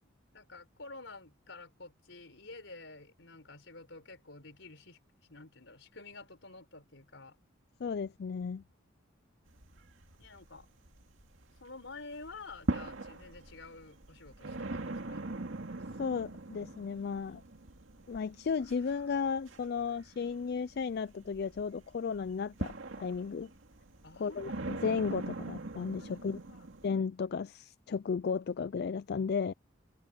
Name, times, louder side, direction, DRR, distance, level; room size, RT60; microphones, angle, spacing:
voice 1, 0.0-5.0 5.3-7.4 10.2-10.7 11.6-15.2 24.0-24.5 26.0-26.7, left 3 dB, 75° left, 4.7 m, -50 dB
voice 2, 7.8-8.6 16.0-17.4 18.1-23.5 24.2-26.4 26.8-29.5, left 5 dB, 55° left, 0.4 m, -34 dB
sound 1, 9.5-11.6 12.0-26.9, right 2 dB, 85° right, 2.2 m, -42 dB
head